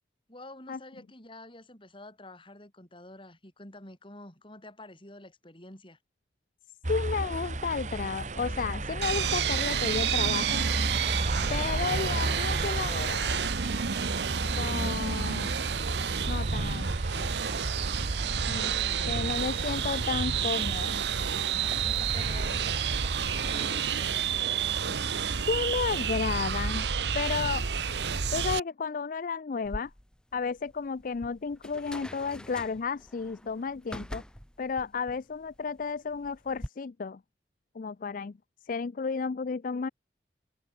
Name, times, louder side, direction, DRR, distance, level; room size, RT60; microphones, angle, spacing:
voice 1, 0.3-6.0 18.5-19.0 21.8-25.1, left 1 dB, 30° left, 6.7 m, -48 dB
sound 1, 6.8-23.8, right 2 dB, 45° right, 2.0 m, -35 dB
voice 2, 6.9-10.7 11.5-13.6 13.9-14.0 14.6-15.6 16.3-17.3 18.5-18.8 19.1-21.0 25.5-26.9 27.1-27.6 28.3-29.9 30.3-34.2 34.6-37.2 37.7-38.3 38.7-39.9, left 5 dB, 50° left, 0.4 m, -32 dB
sound 2, 9.0-28.6, right 6 dB, 75° right, 0.9 m, -30 dB
sound 3, 29.6-36.7, equal, 5° left, 0.8 m, -45 dB
head